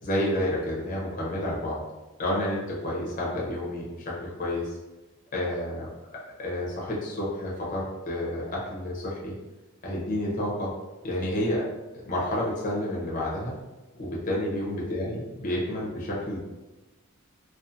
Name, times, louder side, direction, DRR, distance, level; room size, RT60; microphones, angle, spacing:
voice 1, 0.0-1.8 2.2-4.7 5.3-5.9 6.4-9.3 9.8-10.7 11.0-11.6 12.0-13.5 14.0-16.4, left 1 dB, 40° left, -5 dB, 0.6 m, -30 dB
2.4 x 2.3 x 2.7 m, 1.1 s
head